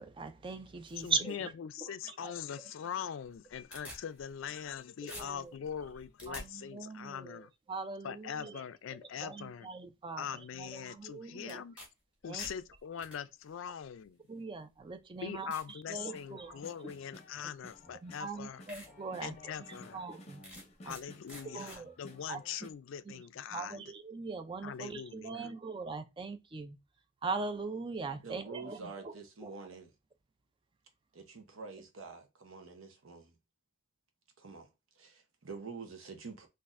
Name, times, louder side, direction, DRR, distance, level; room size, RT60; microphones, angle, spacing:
voice 1, 0.0-1.5 2.1-2.3 5.1-5.5 6.3-8.6 9.2-10.3 10.5-11.6 12.3-12.5 14.3-16.6 18.0-19.5 19.9-20.4 20.8-21.0 21.5-21.9 22.3-22.4 23.1-23.2 23.5-26.8 27.2-29.5, right 4 dB, 25° right, 0.4 m, -40 dB
voice 2, 1.0-7.5 8.0-9.7 10.2-11.8 12.2-14.2 15.2-18.6 19.2-20.0 20.8-23.8 24.6-25.5, left 8 dB, 70° left, 0.3 m, -42 dB
sound 1, 3.2-4.8 5.1-6.5 11.5-11.9 12.2-13.2 14.1-14.2 14.8-14.9 15.5-15.7 16.2-16.6 17.7-17.8 18.3-18.4 18.7-18.9 19.3-19.4 20.4-21.0 21.3-21.8, equal, 5° right, 1.3 m, -48 dB
sound 2, 16.0-22.7, left 1 dB, 35° left, 0.6 m, -54 dB
voice 3, 28.1-29.9 31.1-33.3 34.4-34.7 35.0-36.5, right 4 dB, 85° right, 0.8 m, -47 dB
4.0 x 2.5 x 2.5 m
head